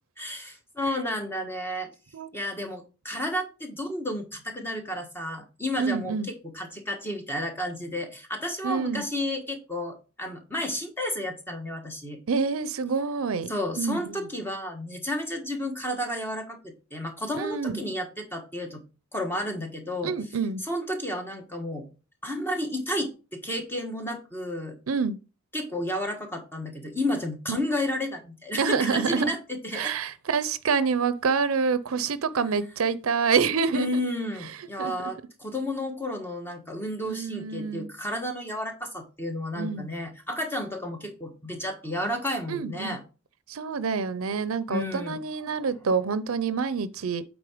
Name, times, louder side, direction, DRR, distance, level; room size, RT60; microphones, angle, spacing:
voice 1, 0.2-1.9 2.3-12.2 13.5-18.8 19.1-20.1 20.6-21.9 22.2-24.8 25.5-29.9 33.7-43.0 44.7-45.2, left 1 dB, 10° left, 1.3 m, -32 dB
voice 2, 5.8-6.3 8.6-9.0 12.3-14.3 17.3-17.8 20.0-20.6 24.9-25.2 27.5-27.6 28.6-29.3 29.7-34.0 34.8-35.1 37.0-37.9 39.5-39.9 42.5-43.0 43.5-47.2, right 5 dB, 90° right, 0.5 m, -27 dB
8.6 x 3.6 x 5.0 m
head